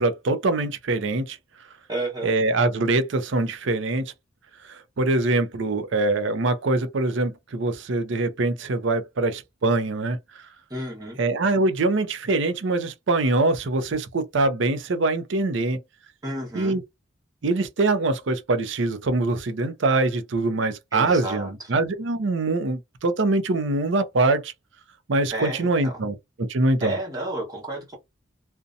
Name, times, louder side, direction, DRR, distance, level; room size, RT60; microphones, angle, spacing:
voice 1, 0.0-1.4 2.2-4.0 4.6-10.5 11.2-15.8 16.5-16.8 17.4-24.5 25.1-26.9, right 2 dB, 70° right, 0.5 m, -23 dB
voice 2, 1.9-2.3 10.7-11.2 16.2-16.8 20.9-21.5 25.3-26.0 26.8-28.0, right 1 dB, 20° right, 1.0 m, -31 dB
2.6 x 2.2 x 2.5 m
head